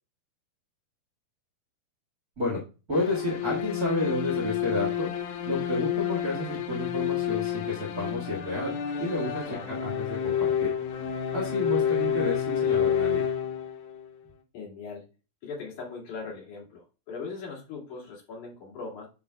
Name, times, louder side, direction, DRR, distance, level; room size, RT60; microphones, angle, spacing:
sound 1, 2.9-14.1, left 9 dB, 85° left, 1.5 m, -29 dB
voice 1, 2.9-5.1 5.4-8.7 9.0-9.4 9.8-10.7 11.3-13.2, left 2 dB, 35° right, -3 dB, 1.8 m, -30 dB
voice 2, 14.5-15.1 15.4-19.1, left 4 dB, 60° left, -3 dB, 3.6 m, -39 dB
8.6 x 5.7 x 2.3 m, 0.32 s
omnidirectional pair, 4.0 m